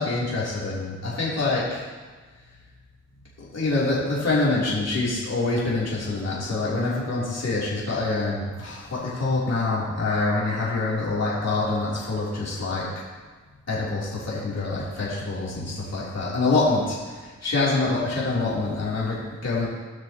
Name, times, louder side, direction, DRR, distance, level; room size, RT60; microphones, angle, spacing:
voice 1, 0.0-1.8 3.4-12.9 13.7-19.7, left 3 dB, 60° left, -7 dB, 3.4 m, -26 dB
17.5 x 6.2 x 3.0 m, 1.4 s
cardioid pair, 55°, 30 cm